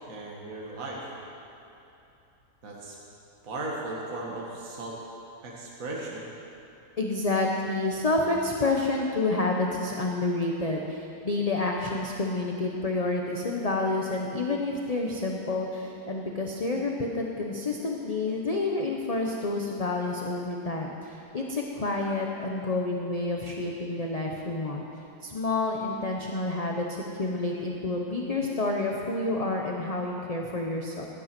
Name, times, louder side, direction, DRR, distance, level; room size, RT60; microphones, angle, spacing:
voice 1, 0.1-1.1 2.6-3.0 3.4-5.0 5.4-6.3, right 2 dB, 55° right, -3 dB, 2.1 m, -36 dB
voice 2, 7.0-24.8 25.2-31.1, left 2 dB, 30° left, 0 dB, 0.8 m, -29 dB
18.5 x 11.0 x 6.0 m, 2.8 s
omnidirectional pair, 1.8 m